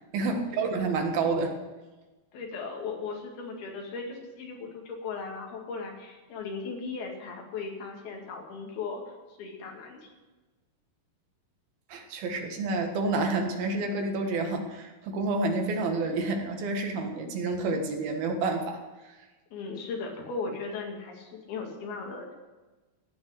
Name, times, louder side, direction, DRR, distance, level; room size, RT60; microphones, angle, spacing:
voice 1, 0.1-1.6 11.9-18.8, right 3 dB, 80° right, 4 dB, 3.6 m, -29 dB
voice 2, 2.3-9.0 9.4-10.1 19.5-22.3, left 4 dB, 85° left, 0 dB, 4.2 m, -37 dB
17.0 x 6.4 x 9.6 m, 1.2 s
omnidirectional pair, 4.3 m